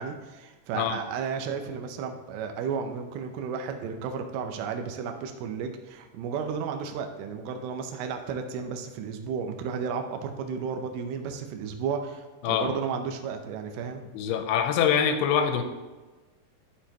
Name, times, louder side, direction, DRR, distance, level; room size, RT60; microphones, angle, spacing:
voice 1, 0.0-14.0, right 6 dB, 80° right, 5 dB, 2.6 m, -33 dB
voice 2, 14.1-15.6, left 8 dB, 80° left, 7 dB, 2.6 m, -24 dB
11.5 x 6.7 x 3.0 m, 1.2 s
omnidirectional pair, 4.7 m